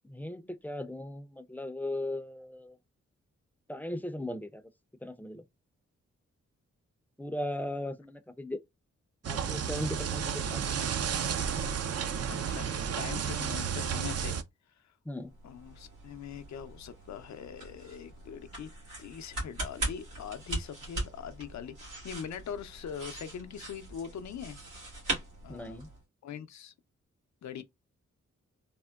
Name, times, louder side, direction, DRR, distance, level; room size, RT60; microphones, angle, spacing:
voice 1, 0.0-2.8 3.7-4.6 5.0-5.4 7.2-8.6 9.2-10.8 15.1-15.3 25.5-25.9, left 1 dB, 5° left, 0.4 m, -37 dB
sound 1, 9.2-14.4, right 7 dB, 55° right, 0.5 m, -32 dB
voice 2, 12.3-14.4 14.8-14.9 15.4-18.7 19.0-24.6 25.4-25.8 26.2-26.7 27.4-27.6, left 7 dB, 70° left, 0.5 m, -42 dB
sound 2, 15.2-26.0, right 2 dB, 85° right, 1.4 m, -40 dB
3.6 x 2.1 x 2.3 m
cardioid pair, 50°, 29 cm